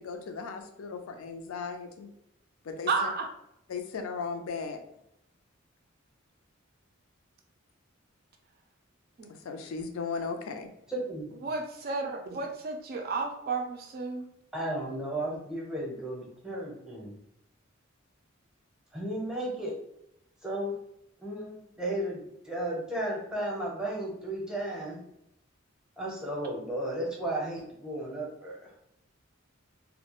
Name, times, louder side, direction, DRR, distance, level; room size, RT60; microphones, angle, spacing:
voice 1, 0.0-2.1 2.6-3.1 3.7-4.8 9.3-10.7, left 5 dB, 85° left, 5 dB, 0.4 m, -36 dB
voice 2, 2.9-3.3 9.2-9.3 11.4-14.3, right 4 dB, 45° right, 4 dB, 0.3 m, -32 dB
voice 3, 10.9-11.3 14.5-17.1 18.9-19.7 20.4-20.7 21.2-25.0 26.0-28.6, right 1 dB, 5° right, -4 dB, 0.6 m, -34 dB
2.3 x 2.1 x 2.9 m, 0.79 s
head